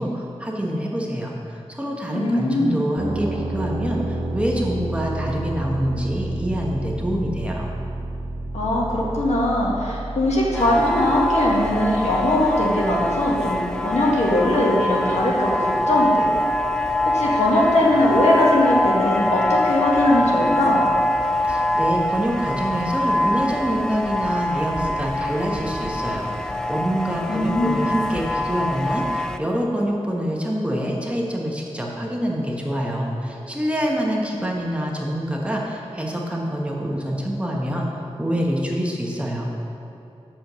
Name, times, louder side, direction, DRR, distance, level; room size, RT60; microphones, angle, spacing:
voice 1, 0.0-7.7 21.4-37.9 38.2-39.5, equal, 10° right, -2 dB, 1.0 m, -26 dB
voice 2, 2.1-2.8 8.5-16.3 17.0-20.8 27.3-27.9, left 1 dB, 80° left, -4 dB, 1.5 m, -20 dB
sound 1, 3.0-14.6, right 2 dB, 55° right, 1.5 m, -31 dB
sound 2, 10.5-29.4, left 1 dB, 5° left, 0.3 m, -24 dB
6.9 x 4.4 x 6.6 m, 2.8 s
wide cardioid pair, 85°, 11 cm